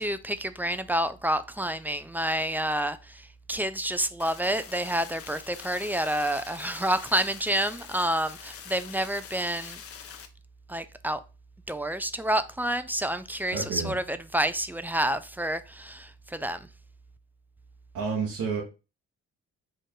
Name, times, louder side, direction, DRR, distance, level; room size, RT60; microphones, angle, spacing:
voice 1, 0.0-9.8 10.7-11.2 11.7-16.7, right 1 dB, 5° right, 0.4 m, -29 dB
sound 1, 4.2-10.3, left 7 dB, 50° left, 0.7 m, -45 dB
voice 2, 13.5-13.9 17.9-18.6, right 5 dB, 90° right, 1.4 m, -30 dB
4.6 x 2.5 x 4.5 m
cardioid pair, 90°, 30 cm